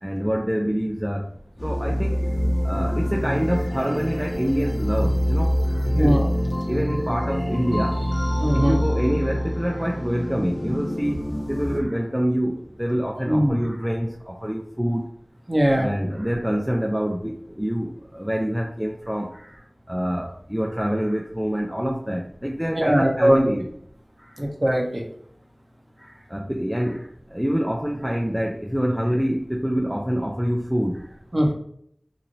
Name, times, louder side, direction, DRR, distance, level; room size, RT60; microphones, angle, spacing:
voice 1, 0.0-1.3 1.6-2.2 2.6-6.2 6.7-8.0 8.4-15.1 15.8-23.7 24.2-24.3 26.0-31.1, equal, 10° right, 0 dB, 0.4 m, -26 dB
sound 1, 1.6-11.8, equal, 15° left, 1.1 m, -25 dB
voice 2, 5.9-6.3 8.4-8.8 13.3-13.6 15.5-15.9 22.7-23.4 24.4-25.0 31.3-31.5, equal, 40° right, 0 dB, 0.8 m, -20 dB
3.0 x 2.7 x 2.6 m, 0.67 s
wide cardioid pair, 40°, 0 cm